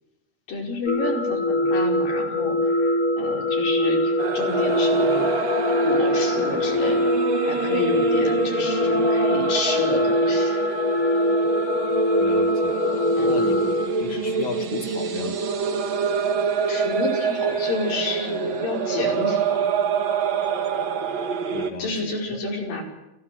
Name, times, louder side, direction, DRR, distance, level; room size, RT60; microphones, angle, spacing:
voice 1, 0.5-5.3 5.8-7.1 7.4-10.6 13.1-13.6 16.7-19.7 21.8-22.8, left 3 dB, 90° left, 1 dB, 6.8 m, -30 dB
sound 1, 0.9-13.9, left 1 dB, 35° left, 1.6 m, -23 dB
sound 2, 4.2-21.7, right 5 dB, 55° right, 2.9 m, -26 dB
voice 2, 12.2-13.6 14.0-15.4 21.5-22.4, left 6 dB, 65° left, 2 dB, 2.8 m, -34 dB
28.5 x 17.0 x 7.7 m, 0.87 s
omnidirectional pair, 3.9 m